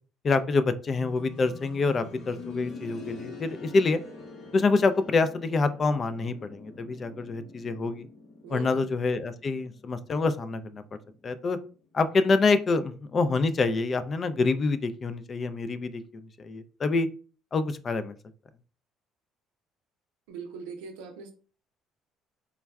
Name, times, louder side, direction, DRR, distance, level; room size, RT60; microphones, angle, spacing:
voice 1, 0.2-4.0 4.5-8.1 8.5-10.8 11.2-11.6 11.9-16.0 16.4-17.1 17.5-18.2, left 3 dB, 40° left, 11 dB, 0.3 m, -26 dB
sound 1, 0.9-11.7 12.0-12.1 13.0-13.1, left 4 dB, 80° left, 0.8 m, -46 dB
voice 2, 8.4-8.9 20.3-21.3, right 5 dB, 85° right, 5 dB, 0.5 m, -40 dB
3.4 x 2.1 x 2.3 m, 0.38 s
supercardioid pair, 70°, 0 cm